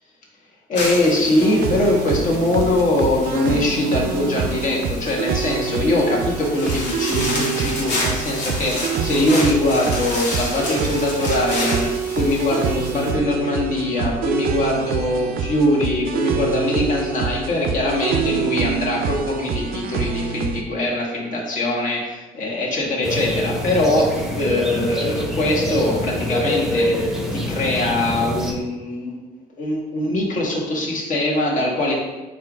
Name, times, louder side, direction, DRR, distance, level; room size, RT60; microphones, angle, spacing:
sound 1, 0.7-13.1, left 2 dB, 75° left, 1.4 m, -30 dB
voice 1, 0.7-11.9 12.1-27.0 27.3-29.2 29.6-31.9, left 1 dB, 50° left, -2 dB, 1.3 m, -22 dB
sound 2, 1.4-20.6, right 7 dB, 60° right, 0.4 m, -26 dB
sound 3, 23.0-28.5, equal, 5° right, 0.7 m, -24 dB
4.3 x 2.5 x 4.8 m, 1.2 s
cardioid pair, 110°, 17 cm